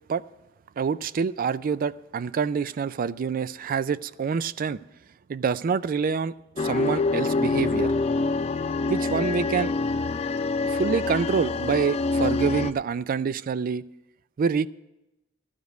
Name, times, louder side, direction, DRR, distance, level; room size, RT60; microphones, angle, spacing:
voice 1, 0.8-4.8 5.3-7.9 8.9-9.7 10.6-13.8 14.4-14.7, right 6 dB, 45° right, 18 dB, 0.3 m, -26 dB
sound 1, 6.6-12.7, left 3 dB, 30° left, 0.4 m, -26 dB
13.5 x 5.1 x 9.3 m, 0.94 s
head